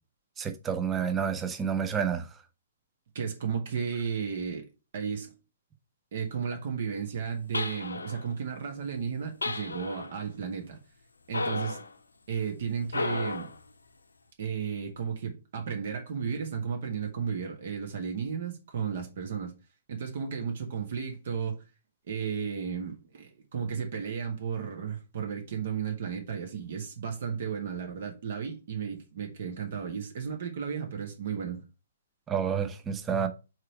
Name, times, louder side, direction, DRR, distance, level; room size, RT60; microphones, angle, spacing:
voice 1, 0.4-2.3 32.3-33.3, right 7 dB, 15° right, 0.8 m, -29 dB
voice 2, 3.1-4.6 4.9-5.3 6.1-10.8 11.3-11.8 12.3-13.5 14.4-19.5 19.9-21.6 22.1-31.6, right 6 dB, 50° right, 1.6 m, -34 dB
sound 1, 7.5-8.3 9.4-10.2 11.3-11.9 12.9-13.6, left 3 dB, 75° left, 0.7 m, -33 dB
4.8 x 4.6 x 4.7 m
figure-of-eight pair, 120°, 0 cm